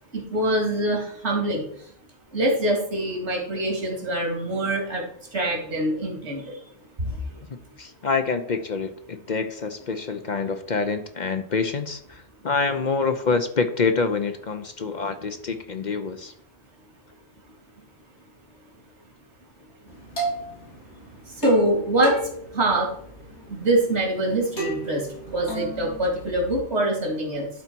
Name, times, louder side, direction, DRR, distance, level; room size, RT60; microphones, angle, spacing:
voice 1, 0.1-1.7 2.3-5.1 5.3-6.6 7.0-7.4 21.3-22.2 22.5-22.9 23.5-27.5, right 1 dB, 85° right, 2.5 m, -24 dB
voice 2, 7.5-16.3, left 4 dB, 50° left, 0.7 m, -26 dB
sound 1, 19.9-26.6, right 2 dB, 80° left, 3.2 m, -34 dB
11.5 x 4.1 x 4.5 m
omnidirectional pair, 1.1 m